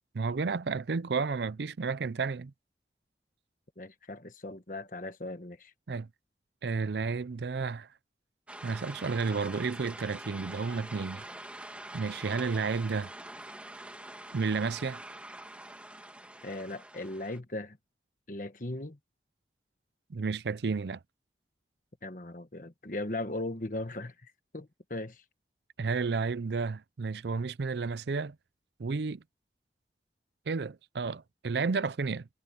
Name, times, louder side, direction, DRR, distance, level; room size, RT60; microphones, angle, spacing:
voice 1, 0.1-2.5 5.9-6.1 6.6-7.9 8.6-11.2 11.9-13.1 14.3-15.0 20.1-21.0 25.8-28.4 28.8-29.2 30.5-32.3, right 4 dB, 70° right, 0.5 m, -32 dB
voice 2, 3.8-5.7 16.4-17.8 18.3-19.0 22.0-25.2, left 2 dB, 45° left, 1.4 m, -38 dB
sound 1, 8.5-17.4, right 1 dB, 5° right, 1.8 m, -45 dB
head